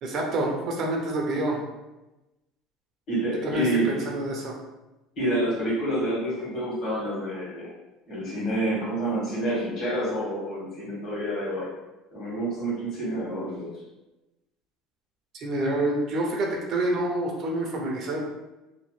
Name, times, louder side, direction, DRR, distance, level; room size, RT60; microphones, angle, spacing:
voice 1, 0.0-1.6 3.4-4.6 15.3-18.3, right 1 dB, 50° right, 0 dB, 0.5 m, -27 dB
voice 2, 3.1-4.0 5.1-7.7 8.1-11.7 12.1-13.7, right 1 dB, 50° left, -6 dB, 1.5 m, -28 dB
2.9 x 2.0 x 3.0 m, 1.0 s
cardioid pair, 140°, 0 cm